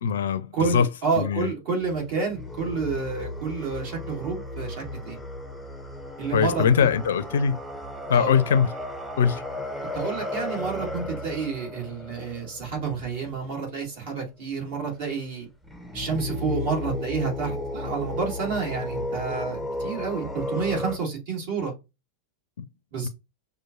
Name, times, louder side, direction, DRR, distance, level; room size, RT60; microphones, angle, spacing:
voice 1, 0.0-0.9 1.2-1.5 6.3-7.6 8.1-8.7 9.2-9.4 22.6-22.7 23.0-23.1, left 7 dB, 60° left, 0.5 m, -22 dB
voice 2, 0.5-5.2 6.2-6.9 8.1-8.3 9.9-15.5 15.9-21.7 22.9-23.1, right 5 dB, 50° right, 2.3 m, -29 dB
sound 1, 1.8-13.8 15.7-21.0, left 1 dB, ahead, 0.7 m, -34 dB
6.0 x 2.5 x 2.4 m
figure-of-eight pair, 90°, 0 cm